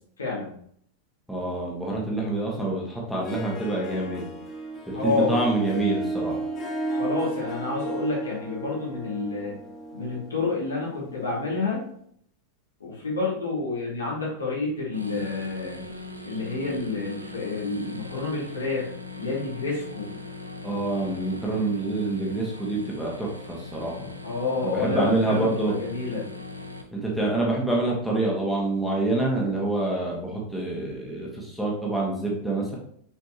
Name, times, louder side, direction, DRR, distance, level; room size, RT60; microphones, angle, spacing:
voice 1, 0.2-0.5 4.9-5.3 6.9-9.6 9.9-11.8 12.8-15.8 16.2-18.9 19.2-20.1 24.2-26.2, left 3 dB, 70° left, -5 dB, 2.4 m, -29 dB
voice 2, 1.3-4.3 5.0-6.4 20.6-24.1 24.6-25.7 26.9-32.7, right 2 dB, ahead, -4 dB, 1.7 m, -26 dB
Harp, 3.1-11.7, right 2 dB, 30° left, 1.0 m, -34 dB
sound 1, 14.9-26.8, left 2 dB, 85° right, 0.7 m, -40 dB
6.4 x 5.2 x 3.0 m, 0.66 s
figure-of-eight pair, 90°, 0 cm